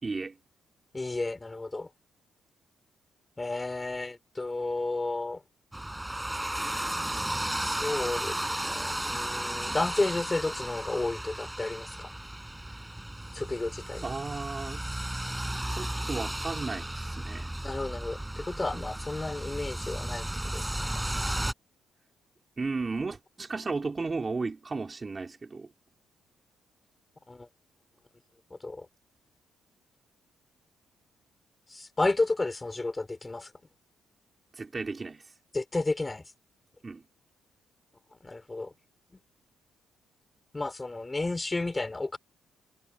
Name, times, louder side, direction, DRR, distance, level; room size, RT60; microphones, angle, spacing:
voice 1, 0.0-0.4 14.0-14.8 15.7-17.6 18.7-18.8 22.6-25.7 34.5-35.3 36.8-37.0, right 4 dB, 20° right, 3.9 m, -34 dB
voice 2, 0.9-1.9 3.4-5.4 7.6-12.1 13.3-14.0 17.6-21.0 27.3-27.5 28.5-28.9 31.7-33.5 35.5-36.3 38.2-38.7 40.5-42.2, left 2 dB, 15° left, 5.6 m, -32 dB
sound 1, 5.7-21.5, right 1 dB, 5° right, 7.9 m, -34 dB
cardioid pair, 150°, 0 cm